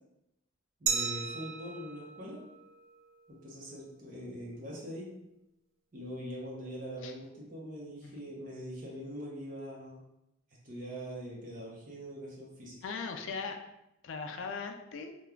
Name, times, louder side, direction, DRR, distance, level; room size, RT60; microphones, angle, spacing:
voice 1, 0.8-2.4 3.3-5.1 5.9-10.0 10.6-12.8, equal, 45° right, -4 dB, 0.7 m, -43 dB
Glass, 0.9-3.6, right 6 dB, 70° right, 0.3 m, -36 dB
voice 2, 12.8-13.6 14.0-15.1, left 5 dB, 70° left, 5 dB, 0.3 m, -39 dB
3.1 x 2.2 x 2.3 m, 0.87 s
head